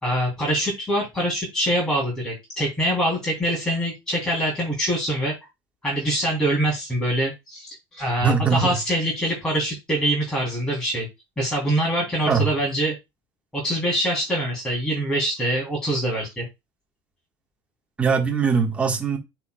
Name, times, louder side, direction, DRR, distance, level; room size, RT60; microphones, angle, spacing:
voice 1, 0.0-5.4 5.8-11.1 11.4-13.0 13.5-16.5, right 1 dB, 5° left, 3.0 m, -24 dB
voice 2, 8.2-8.7 12.2-12.5 18.0-19.2, right 5 dB, 10° right, 1.4 m, -21 dB
9.4 x 4.5 x 2.2 m
cardioid pair, 145°, 10 cm